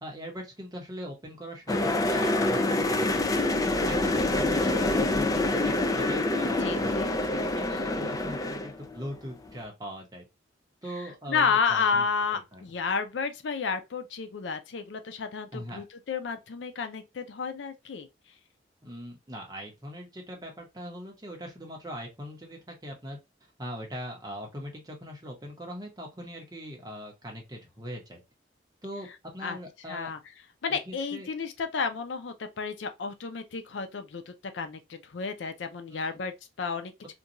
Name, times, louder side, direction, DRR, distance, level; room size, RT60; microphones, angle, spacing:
voice 1, 0.0-3.5 3.9-10.3 10.8-12.6 15.5-15.8 18.8-23.2 23.6-28.2 28.8-29.1 29.3-30.1 30.9-31.3 35.9-36.2, equal, 20° right, 0.8 m, -41 dB
sound 1, 1.7-9.1 9.4-9.6, left 2 dB, 20° left, 0.3 m, -26 dB
voice 2, 6.6-7.1 11.3-18.1 29.4-29.6 29.9-30.2 30.6-37.1, left 5 dB, 90° left, 0.5 m, -31 dB
2.6 x 2.3 x 2.7 m
head